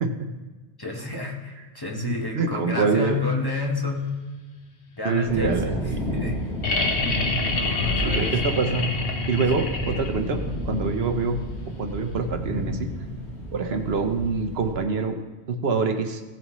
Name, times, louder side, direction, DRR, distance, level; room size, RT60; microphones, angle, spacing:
voice 1, 0.0-0.3 1.9-3.2 5.0-6.2 7.6-7.7 8.0-8.9 9.3-11.4 11.8-12.9 13.5-15.2 15.5-16.2, right 4 dB, 70° right, 6 dB, 1.0 m, -25 dB
voice 2, 0.8-4.1 5.0-5.7 6.1-6.5 7.5-8.4 9.5-9.7, left 3 dB, 20° left, -1 dB, 1.1 m, -30 dB
sound 1, 5.3-14.7, equal, 85° left, 2.2 m, -31 dB
sound 2, 6.6-10.4 12.1-12.2, left 3 dB, 65° left, 1.2 m, -27 dB
15.5 x 7.4 x 3.1 m, 1.3 s
omnidirectional pair, 1.1 m